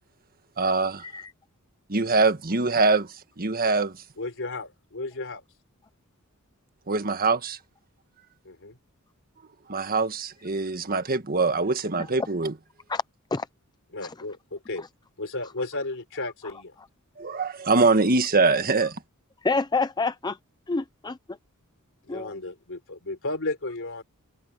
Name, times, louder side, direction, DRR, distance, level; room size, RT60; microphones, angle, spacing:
voice 1, 0.6-1.0 1.9-4.0 6.9-7.6 9.7-12.5 17.2-19.0, right 3 dB, 45° right, 1.6 m, -23 dB
voice 2, 4.2-5.4 8.4-8.8 13.9-14.8 15.2-16.8 22.0-24.0, left 2 dB, 60° left, 4.0 m, -34 dB
voice 3, 19.4-20.4 20.7-21.2 22.1-22.4, left 3 dB, 20° left, 0.5 m, -27 dB
head